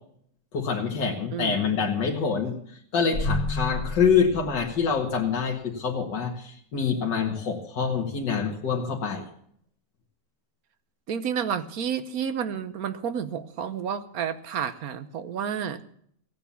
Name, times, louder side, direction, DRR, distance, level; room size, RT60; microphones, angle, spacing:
voice 1, 0.5-9.3, left 6 dB, 75° left, -1 dB, 2.3 m, -26 dB
voice 2, 1.3-1.7 11.1-15.8, right 7 dB, 60° right, 11 dB, 1.2 m, -30 dB
sound 1, 3.1-5.4, left 2 dB, 55° left, 2.3 m, -31 dB
16.0 x 9.2 x 7.0 m, 0.65 s
omnidirectional pair, 1.9 m